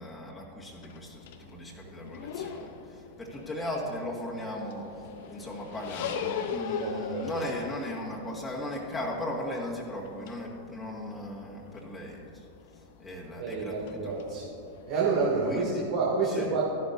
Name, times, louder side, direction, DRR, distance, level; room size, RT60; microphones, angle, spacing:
voice 1, 0.0-12.5 13.0-14.2 15.4-15.8 16.3-16.5, left 1 dB, 10° left, -4 dB, 2.0 m, -37 dB
sound 1, 0.7-15.9, left 7 dB, 55° left, 0.8 m, -41 dB
voice 2, 6.8-7.3 13.4-14.5 14.9-16.6, right 4 dB, 50° right, -5 dB, 2.5 m, -29 dB
14.5 x 11.5 x 2.7 m, 2.6 s
figure-of-eight pair, 90°, 0 cm